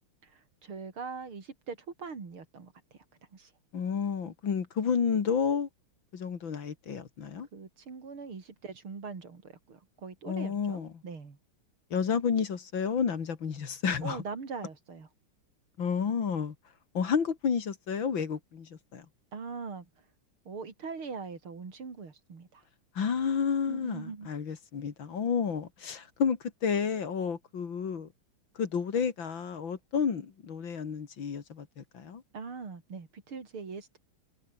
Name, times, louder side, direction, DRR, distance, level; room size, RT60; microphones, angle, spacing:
voice 1, 0.2-3.0 3.3-3.5 7.5-11.4 14.0-15.1 19.3-19.9 20.5-22.6 23.7-24.3 32.3-34.0, right 5 dB, 70° right, 4.2 m, -42 dB
voice 2, 3.7-5.7 6.1-7.5 10.3-10.9 11.9-14.2 15.8-16.5 16.9-19.1 22.9-28.1 28.6-32.2, left 6 dB, 60° left, 2.7 m, -31 dB
omnidirectional pair, 2.4 m